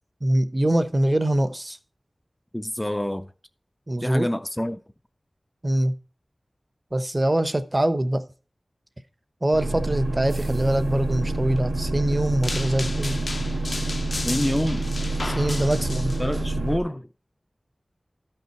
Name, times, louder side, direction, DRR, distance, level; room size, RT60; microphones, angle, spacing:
voice 1, 0.2-1.8 3.9-4.3 5.6-5.9 6.9-8.2 9.4-13.2 15.2-16.1, right 1 dB, 30° right, 0.9 m, -23 dB
voice 2, 2.5-3.3 4.0-4.8 14.3-14.8 16.2-17.1, left 1 dB, 15° left, 0.5 m, -27 dB
sound 1, 9.5-16.8, right 2 dB, 65° right, 1.9 m, -28 dB
sound 2, 12.4-16.4, left 2 dB, 60° left, 0.6 m, -34 dB
12.5 x 5.6 x 4.5 m
wide cardioid pair, 65°, 0 cm